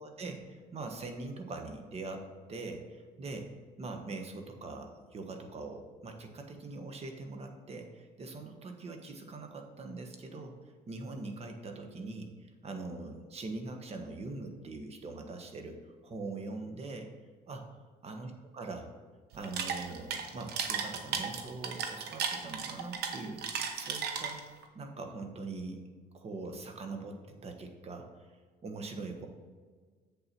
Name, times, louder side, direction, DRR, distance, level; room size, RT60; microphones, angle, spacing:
voice 1, 0.0-3.5 3.8-10.6 10.9-15.8 16.0-17.1 17.5-17.7 18.0-18.9 19.3-24.4 24.7-25.8 26.1-28.3 28.6-29.3, right 3 dB, 40° right, 4 dB, 1.4 m, -42 dB
sound 1, 19.3-24.6, right 6 dB, 70° right, 1.1 m, -35 dB
7.6 x 7.1 x 4.5 m, 1.5 s
cardioid pair, 110°, 17 cm